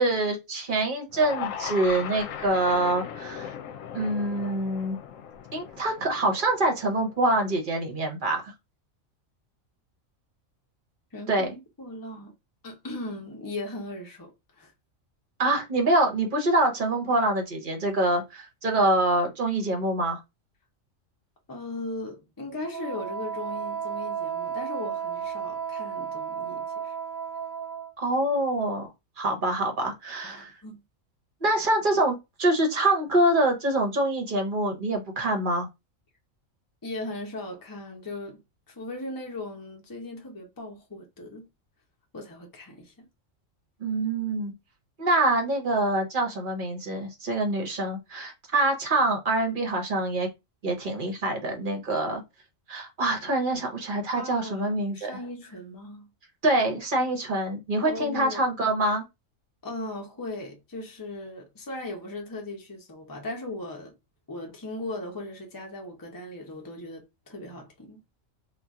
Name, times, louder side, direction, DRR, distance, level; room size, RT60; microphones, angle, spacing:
voice 1, 0.0-3.5 3.9-5.0 5.5-8.5 11.3-11.5 15.4-20.2 28.0-28.9 29.2-30.5 31.4-35.7 43.8-44.5 45.0-50.3 50.6-52.2 52.7-55.2 56.4-59.0, right 2 dB, 45° right, 1.0 m, -25 dB
sound 1, 1.1-7.4, left 8 dB, 80° left, 1.0 m, -38 dB
voice 2, 11.1-12.3 12.6-14.3 14.6-14.7 21.5-26.9 30.2-30.8 36.8-38.4 38.7-41.5 42.1-43.1 54.2-56.1 57.8-58.4 59.6-63.9 64.3-68.0, left 2 dB, 20° left, 0.8 m, -38 dB
Wind instrument woodwind instrument, 22.7-27.9, right 7 dB, 90° right, 1.0 m, -33 dB
2.9 x 2.5 x 3.5 m
omnidirectional pair, 1.4 m